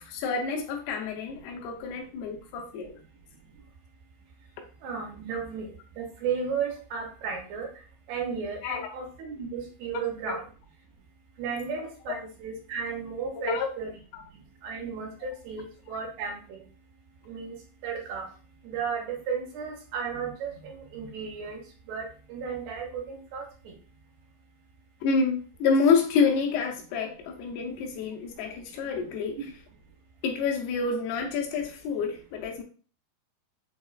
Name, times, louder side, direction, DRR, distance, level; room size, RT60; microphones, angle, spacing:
voice 1, 0.0-3.0 8.6-8.9 9.9-10.4 13.3-13.7 14.1-14.2 15.9-16.0 25.0-29.4 30.2-32.6, left 5 dB, 85° left, 2.7 m, -28 dB
voice 2, 4.8-5.7 6.0-7.7 8.1-10.4 11.4-13.9 14.6-16.6 17.3-17.6 17.8-18.3 18.6-21.6 21.9-23.7, right 6 dB, 85° right, 2.7 m, -34 dB
6.3 x 2.1 x 2.3 m
omnidirectional pair, 4.5 m